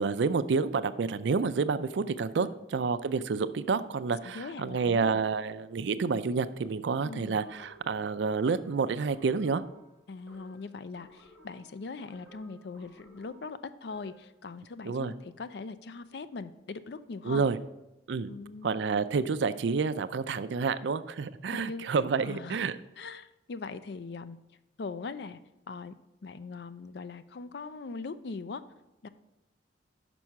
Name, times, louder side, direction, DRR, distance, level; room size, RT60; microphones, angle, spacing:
voice 1, 0.0-9.6 14.8-15.1 17.2-17.6 18.1-18.3 18.6-22.8, right 5 dB, 75° right, 13 dB, 0.4 m, -29 dB
voice 2, 4.2-5.2 7.0-7.4 10.1-17.4 18.3-19.0 21.5-21.8 22.2-22.6 23.0-24.4 24.8-25.4 25.7-25.9 26.2-28.6 29.0-29.1, left 4 dB, 60° left, 13 dB, 0.4 m, -41 dB
sound 1, 7.3-14.4, equal, ahead, 1.8 m, -57 dB
6.1 x 5.4 x 5.8 m, 0.96 s
head